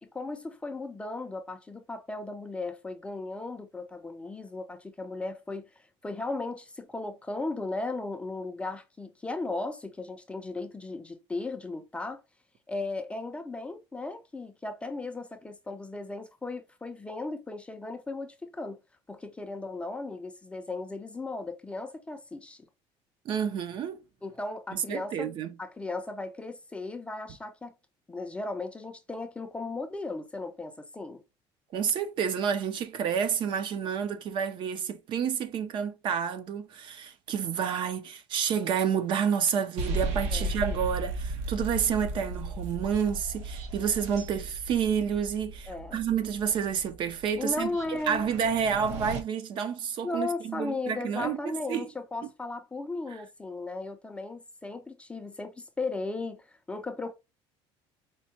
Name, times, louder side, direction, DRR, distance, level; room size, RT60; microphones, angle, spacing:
voice 1, 0.0-12.2 12.7-18.8 19.1-22.6 24.2-25.3 25.6-27.7 28.1-31.2 40.3-40.6 45.7-46.0 47.4-48.2 50.0-57.1, left 3 dB, 10° left, 0.4 m, -36 dB
voice 2, 23.3-24.0 24.7-25.6 31.7-51.9, right 7 dB, 45° right, 0.5 m, -29 dB
sound 1, 39.8-49.2, right 2 dB, 80° right, 0.9 m, -36 dB
4.5 x 2.1 x 2.7 m
cardioid pair, 155°, 11 cm